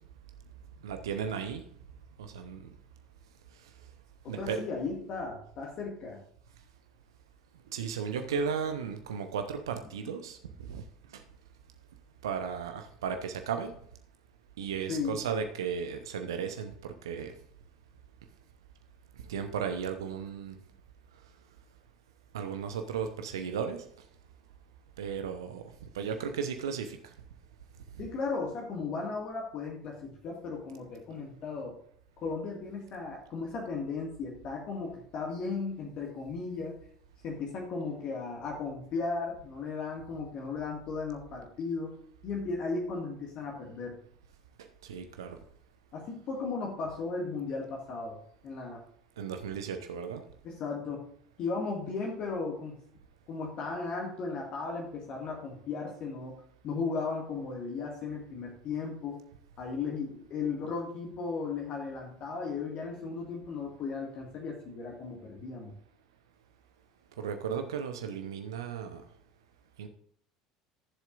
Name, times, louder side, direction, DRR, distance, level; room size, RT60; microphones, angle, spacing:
voice 1, 0.8-1.6 2.2-2.7 4.3-4.6 7.7-10.4 10.7-10.8 11.1-11.2 12.2-13.7 14.6-17.3 19.3-20.5 22.3-23.8 25.0-27.0 44.8-45.4 49.2-50.2 67.2-69.0 69.8-69.9, right 7 dB, 70° right, 6 dB, 0.9 m, -35 dB
voice 2, 4.2-6.2 14.9-15.2 28.0-31.7 32.2-36.8 37.2-42.0 42.2-44.0 45.9-48.2 48.4-48.8 50.4-51.1 51.4-52.8 53.3-56.3 56.6-59.2 59.6-65.7, left 4 dB, 45° left, 0 dB, 2.0 m, -36 dB
14.5 x 7.4 x 2.6 m, 0.65 s
figure-of-eight pair, 65°, 2 cm